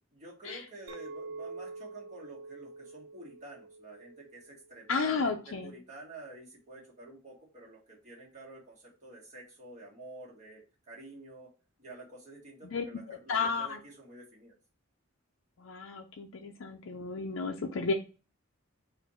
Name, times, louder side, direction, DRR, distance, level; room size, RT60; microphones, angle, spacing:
voice 1, 0.1-11.5 11.8-14.5, right 2 dB, 35° right, -3 dB, 1.6 m, -49 dB
Chink clink, 0.9-5.4, right 3 dB, 75° right, 0.4 m, -46 dB
voice 2, 4.9-5.7 12.6-13.8 15.6-17.9, left 4 dB, 75° left, 3 dB, 0.5 m, -33 dB
4.3 x 2.6 x 4.2 m, 0.35 s
head